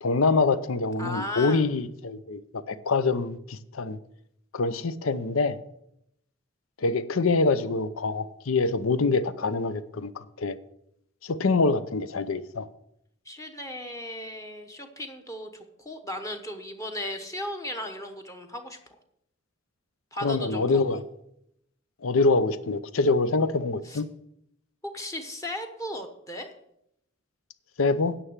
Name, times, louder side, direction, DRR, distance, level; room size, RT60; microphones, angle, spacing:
voice 1, 0.0-2.4 2.7-4.0 4.5-5.6 6.8-10.6 11.2-12.7 20.2-21.0 22.0-24.1 27.8-28.1, left 3 dB, 90° left, 14 dB, 0.7 m, -25 dB
voice 2, 1.0-1.6 13.3-18.8 20.1-21.0 23.8-24.0 24.9-26.5, left 1 dB, 15° left, 5 dB, 1.0 m, -36 dB
10.0 x 6.2 x 7.3 m, 0.77 s
head